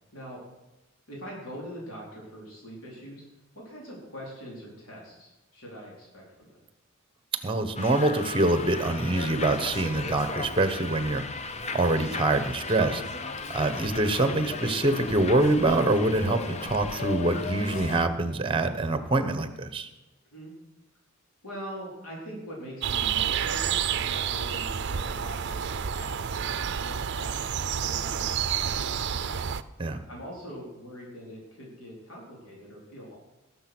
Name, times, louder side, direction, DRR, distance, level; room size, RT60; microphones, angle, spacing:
voice 1, 1.1-3.2 3.5-6.6 20.3-20.5 21.4-26.6 26.8-27.5 27.8-29.2 30.1-33.2, equal, 90° left, -3 dB, 4.1 m, -43 dB
voice 2, 7.4-11.2 11.7-13.0 13.5-19.9 29.8-30.0, right 2 dB, 25° right, 10 dB, 1.1 m, -25 dB
Subway metro underground, 7.8-18.1, left 3 dB, 30° left, 0.6 m, -36 dB
sound 1, 22.8-29.6, right 8 dB, 55° right, 0.5 m, -29 dB
18.5 x 7.4 x 6.2 m, 1.0 s
head